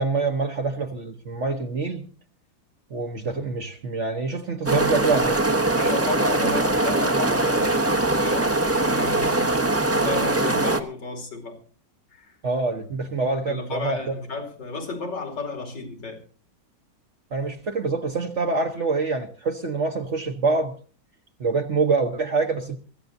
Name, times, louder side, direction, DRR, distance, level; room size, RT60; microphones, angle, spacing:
voice 1, 0.0-2.0 2.9-5.4 12.4-14.1 17.3-20.7 21.4-22.8, right 4 dB, 45° right, 1.1 m, -25 dB
sound 1, 4.7-10.8, right 2 dB, 15° right, 0.6 m, -22 dB
voice 2, 5.7-9.5 9.9-11.6 12.1-12.4 13.5-16.2, left 3 dB, 70° left, 3.4 m, -33 dB
24.0 x 14.5 x 2.6 m
omnidirectional pair, 2.0 m